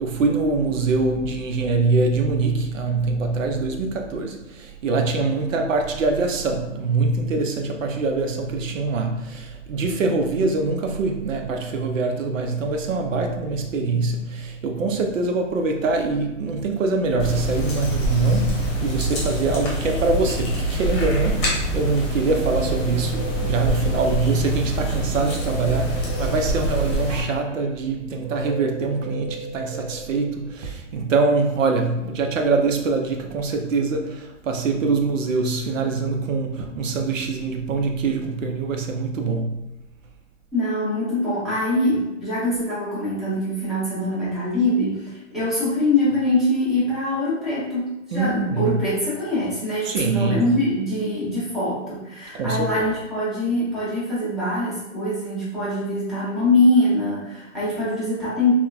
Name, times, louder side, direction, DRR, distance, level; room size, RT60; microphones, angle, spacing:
voice 1, 0.0-39.7 48.1-48.8 49.8-50.6 52.3-52.8, right 3 dB, 75° right, 4 dB, 0.6 m, -24 dB
sound 1, 17.2-27.2, right 1 dB, 25° left, 0.9 m, -25 dB
Guitar, 22.0-24.5 25.3-30.7, right 3 dB, 50° right, 1.1 m, -37 dB
voice 2, 40.5-58.5, left 1 dB, ahead, -11 dB, 0.7 m, -23 dB
3.5 x 2.1 x 2.3 m, 0.93 s
hypercardioid pair, 140°, 39 cm